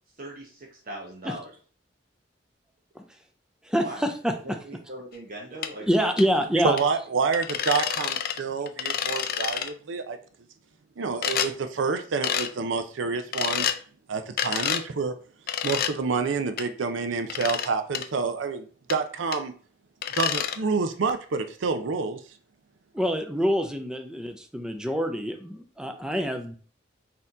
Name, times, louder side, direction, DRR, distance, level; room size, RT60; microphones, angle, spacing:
voice 1, 0.2-1.5 3.8-4.1 4.4-6.1, right 1 dB, 50° right, -2 dB, 0.9 m, -40 dB
voice 2, 3.6-4.6 5.9-6.8 22.9-26.6, equal, 5° right, 5 dB, 0.5 m, -26 dB
sound 1, 5.6-5.7 6.2-6.3 6.8-6.9 7.3-8.4 8.7-9.7 11.2-11.5 12.2-12.5 13.3-13.8 14.4-14.8 15.5-15.9 16.6-16.7 17.3-17.7 17.9-18.1 18.9-19.0 19.3-19.4 20.0-20.6, left 9 dB, 55° left, 0.4 m, -28 dB
voice 3, 6.6-10.2 11.0-13.7 14.1-15.1 15.6-19.5 20.1-22.2, right 4 dB, 90° right, 8 dB, 0.5 m, -28 dB
4.2 x 2.8 x 3.7 m, 0.41 s
head